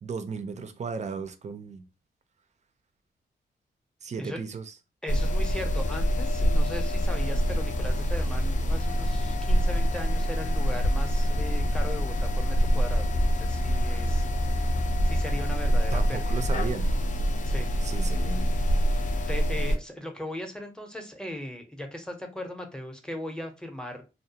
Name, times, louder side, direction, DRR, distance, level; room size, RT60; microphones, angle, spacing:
voice 1, 0.0-1.8 4.0-4.7 15.9-16.9 17.8-18.5, right 5 dB, 40° right, 0.4 m, -35 dB
voice 2, 5.0-14.7 15.0-16.4 17.4-17.7 19.3-24.0, left 1 dB, 5° left, 0.6 m, -38 dB
sound 1, 5.1-19.8, equal, 50° left, 0.4 m, -25 dB
2.3 x 2.1 x 2.8 m
cardioid pair, 90°, 18 cm